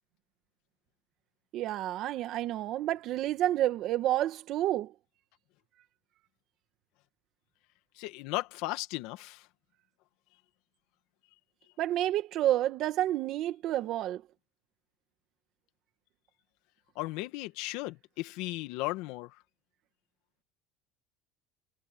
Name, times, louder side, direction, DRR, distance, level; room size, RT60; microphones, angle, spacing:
voice 1, 1.5-4.9 11.8-14.2, right 13 dB, 45° right, 1.7 m, -29 dB
voice 2, 8.0-9.5 17.0-19.3, left 19 dB, 70° left, 1.8 m, -36 dB
cardioid pair, 160°, 0 cm